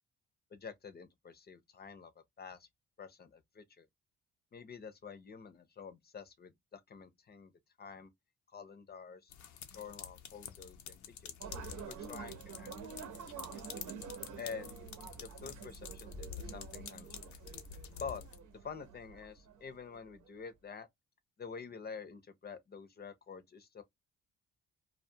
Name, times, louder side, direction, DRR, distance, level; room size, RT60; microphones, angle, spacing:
voice 1, 0.5-2.1 2.4-2.7 3.0-3.9 4.5-7.5 7.8-8.1 8.5-9.3 9.7-11.3 11.9-12.9 13.3-13.6 14.4-14.8 15.2-17.3 18.0-18.2 18.5-20.9 21.4-23.8, left 6 dB, 30° left, 0.6 m, -48 dB
sound 1, 9.3-18.4, left 8 dB, 70° left, 0.6 m, -49 dB
sound 2, 11.4-20.3, right 7 dB, 75° right, 0.8 m, -48 dB
2.3 x 2.2 x 2.6 m
cardioid pair, 90°, 30 cm